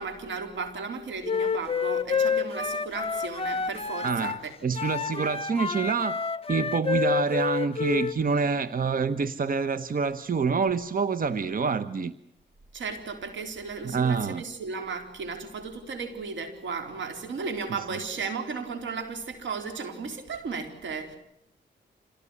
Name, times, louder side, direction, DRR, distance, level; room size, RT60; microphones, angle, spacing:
voice 1, 0.0-4.5 12.7-21.2, right 4 dB, 85° right, 7 dB, 4.1 m, -35 dB
Wind instrument woodwind instrument, 1.2-4.4 4.7-8.2, left 5 dB, 30° left, 0.9 m, -28 dB
voice 2, 4.0-4.3 4.6-12.1 13.8-14.4 17.7-17.8, right 5 dB, 50° right, 14 dB, 1.0 m, -27 dB
27.0 x 18.0 x 9.9 m, 0.79 s
cardioid pair, 75°, 19 cm